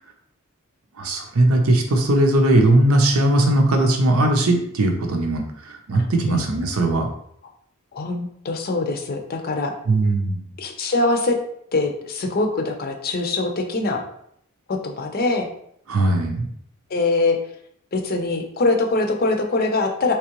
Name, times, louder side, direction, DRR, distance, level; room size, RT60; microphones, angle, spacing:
voice 1, 1.0-7.1 9.9-10.4 15.9-16.5, right 1 dB, 85° right, 3 dB, 0.7 m, -19 dB
voice 2, 7.9-9.7 10.6-11.4 11.7-14.0 14.7-15.5 16.9-17.4 17.9-20.2, left 3 dB, 45° left, 4 dB, 0.5 m, -23 dB
3.6 x 3.0 x 3.0 m, 0.69 s
head